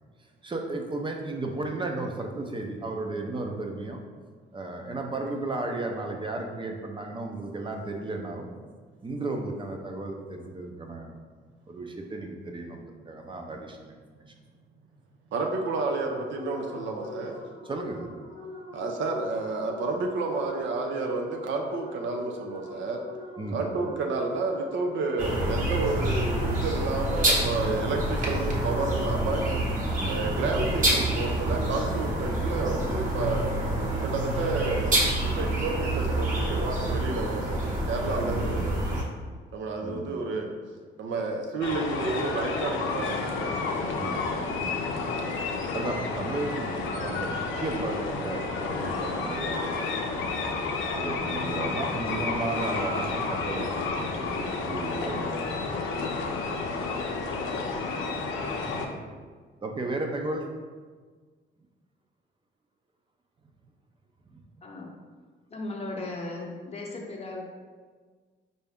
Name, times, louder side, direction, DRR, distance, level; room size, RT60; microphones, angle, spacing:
voice 1, 0.4-4.0 4.5-8.5 9.0-11.1 11.7-13.9 17.6-18.1 23.4-23.7 30.0-30.3 38.2-38.5 39.8-40.1 43.9-45.2 45.7-50.0 50.9-55.6 56.5-56.6 58.9-59.1 59.6-60.4 64.3-64.4, right 2 dB, 25° right, 2 dB, 0.6 m, -34 dB
voice 2, 15.3-17.4 18.7-23.0 23.5-29.5 30.0-37.6 37.9-39.0 39.5-40.5 41.0-43.6 56.5-56.6 57.1-57.2, right 3 dB, 70° right, 2 dB, 0.6 m, -30 dB
sound 1, 16.3-25.7, left 2 dB, 90° right, 1.1 m, -43 dB
sound 2, 25.2-39.0, right 1 dB, 40° right, 1.0 m, -27 dB
sound 3, 41.6-58.9, left 4 dB, 80° left, 0.5 m, -31 dB
voice 3, 64.6-64.9 65.5-67.5, left 2 dB, 30° left, -1 dB, 0.8 m, -36 dB
4.5 x 2.7 x 3.5 m, 1.5 s
cardioid pair, 90°, 20 cm